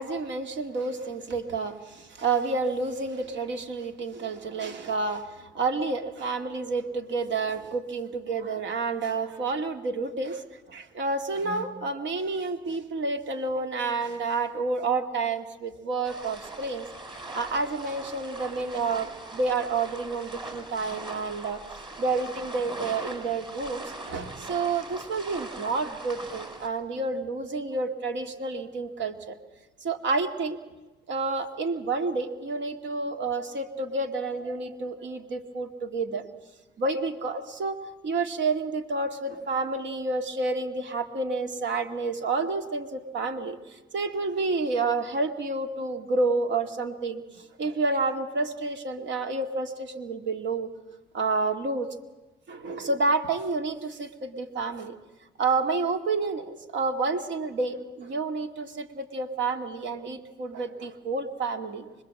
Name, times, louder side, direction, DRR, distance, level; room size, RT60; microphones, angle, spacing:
voice 1, 0.0-10.4 10.7-16.9 17.3-21.6 22.0-29.4 29.8-30.6 31.1-36.3 36.8-37.8 38.0-50.7 51.1-52.0 52.5-55.0 55.4-61.9, right 3 dB, 65° right, 6 dB, 2.1 m, -29 dB
sound 1, 16.0-26.7, right 2 dB, 25° right, 4.9 m, -41 dB
25.0 x 20.5 x 7.7 m, 1.1 s
cardioid pair, 90°, 20 cm